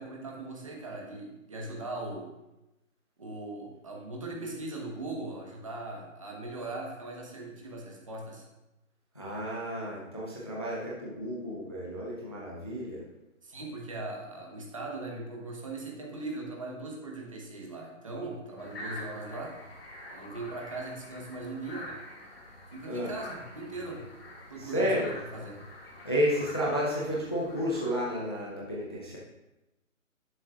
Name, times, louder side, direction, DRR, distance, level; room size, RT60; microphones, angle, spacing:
voice 1, 0.0-2.3 3.2-8.5 13.4-19.6 20.1-21.9 22.7-24.0 24.5-24.9 25.3-25.6, right 2 dB, 25° right, -1 dB, 1.2 m, -39 dB
voice 2, 9.1-13.0 22.9-23.1 24.6-25.1 26.0-29.2, equal, 20° left, -5 dB, 0.7 m, -31 dB
sound 1, 18.6-27.9, left 1 dB, 50° left, 2.1 m, -46 dB
10.5 x 8.8 x 2.4 m, 0.98 s
hypercardioid pair, 175°, 41 cm